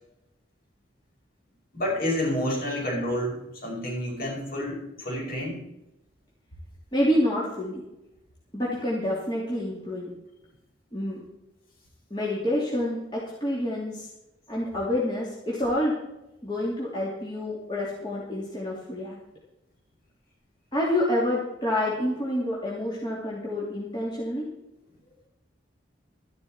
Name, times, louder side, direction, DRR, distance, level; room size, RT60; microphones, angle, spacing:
voice 1, 1.7-5.6, left 1 dB, 50° left, -2 dB, 5.4 m, -29 dB
voice 2, 6.9-7.8 8.5-10.1 10.9-11.2 12.1-14.1 14.5-15.9 16.4-19.2 20.7-24.4, left 1 dB, 25° left, -6 dB, 2.9 m, -28 dB
13.5 x 12.0 x 4.4 m, 0.91 s
head